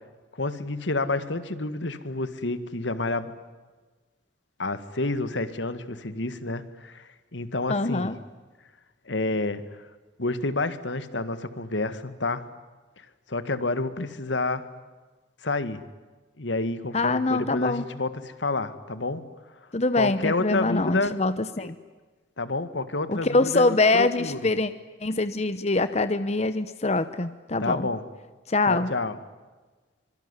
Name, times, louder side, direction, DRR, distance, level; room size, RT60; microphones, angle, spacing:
voice 1, 0.3-3.3 4.6-8.1 9.1-9.6 10.2-12.5 13.3-14.7 15.4-15.8 16.4-19.2 19.9-21.2 21.6-21.7 22.4-24.4 27.6-28.0 28.7-29.2, left 2 dB, 80° left, 12 dB, 1.9 m, -29 dB
voice 2, 7.7-8.2 16.9-17.8 19.7-21.8 23.1-24.7 25.0-27.9 28.5-28.9, left 2 dB, 35° left, 12 dB, 0.9 m, -24 dB
25.0 x 23.5 x 9.9 m, 1.3 s
head